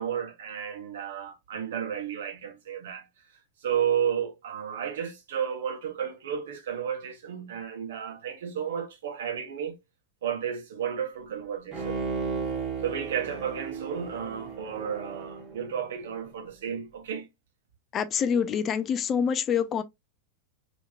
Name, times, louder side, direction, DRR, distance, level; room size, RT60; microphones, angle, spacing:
voice 1, 0.0-3.1 3.6-9.8 10.2-12.0 12.8-17.3, right 8 dB, 60° right, 0.9 m, -32 dB
Bowed string instrument, 11.7-16.3 16.7-16.8, right 5 dB, 30° right, 1.2 m, -35 dB
voice 2, 17.9-19.8, left 7 dB, 30° left, 0.3 m, -26 dB
3.4 x 2.9 x 2.3 m
figure-of-eight pair, 90°, 0 cm